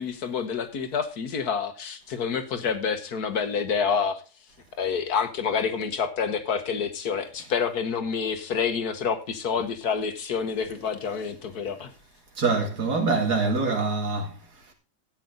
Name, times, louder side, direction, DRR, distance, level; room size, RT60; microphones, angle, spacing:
voice 1, 0.0-4.2 4.7-11.9, left 6 dB, 65° left, 1.6 m, -28 dB
voice 2, 12.4-14.3, right 4 dB, 65° right, 2.7 m, -24 dB
13.5 x 9.0 x 3.9 m
omnidirectional pair, 1.9 m